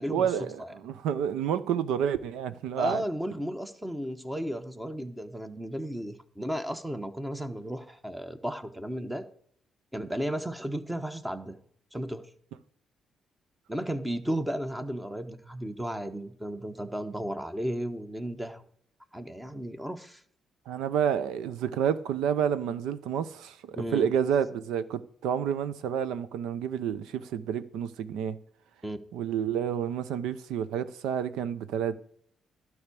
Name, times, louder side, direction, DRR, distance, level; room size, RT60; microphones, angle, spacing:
voice 1, 0.1-3.0 20.7-28.4 29.1-32.0, right 8 dB, 90° right, 0.7 m, -29 dB
voice 2, 2.8-9.2 9.9-11.6 11.9-12.3 13.7-18.6 19.1-20.2 23.7-24.1 28.8-29.0, equal, 10° right, 1.1 m, -34 dB
12.0 x 4.7 x 8.4 m
cardioid pair, 90°, 0 cm